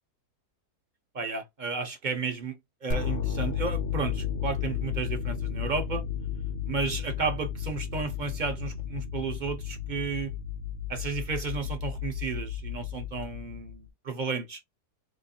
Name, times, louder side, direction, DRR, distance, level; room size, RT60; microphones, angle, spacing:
voice 1, 1.1-6.0 6.7-10.3 10.9-14.6, right 4 dB, 50° right, 0.5 m, -33 dB
sound 1, 2.9-13.9, left 8 dB, 60° left, 0.6 m, -33 dB
4.1 x 2.5 x 2.6 m
omnidirectional pair, 1.7 m